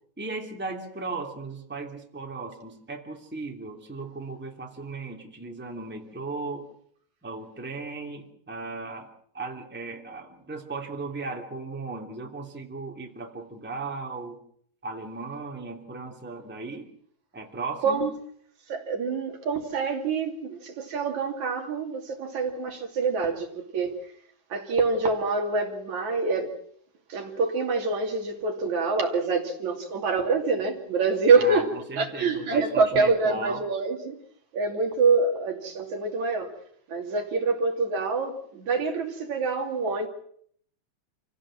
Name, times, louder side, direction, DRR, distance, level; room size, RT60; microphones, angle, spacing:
voice 1, 0.2-6.7 7.2-14.4 14.8-16.9 17.3-18.0 31.3-33.6, right 3 dB, 5° right, 2.7 m, -36 dB
voice 2, 18.7-24.0 24.5-26.5 27.1-34.2 34.5-36.5 36.9-40.1, right 4 dB, 65° right, 4.0 m, -26 dB
28.0 x 16.5 x 7.6 m
omnidirectional pair, 3.6 m